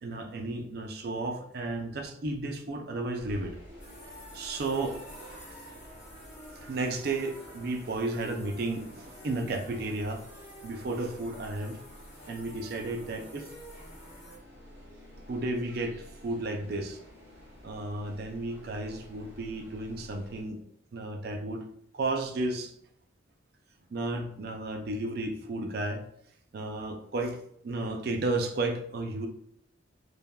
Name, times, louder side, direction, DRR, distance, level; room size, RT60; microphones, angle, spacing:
voice 1, 0.0-3.6 4.3-5.0 6.6-10.2 10.6-11.8 12.3-13.5 15.3-17.0 17.6-20.6 20.9-21.7 21.9-22.7 23.9-26.1 26.5-29.3, right 2 dB, 50° right, 4 dB, 0.4 m, -33 dB
sound 1, 3.2-20.4, equal, 15° right, 1.1 m, -50 dB
sound 2, 3.8-14.4, equal, 35° left, 0.9 m, -50 dB
3.3 x 2.1 x 2.2 m, 0.71 s
head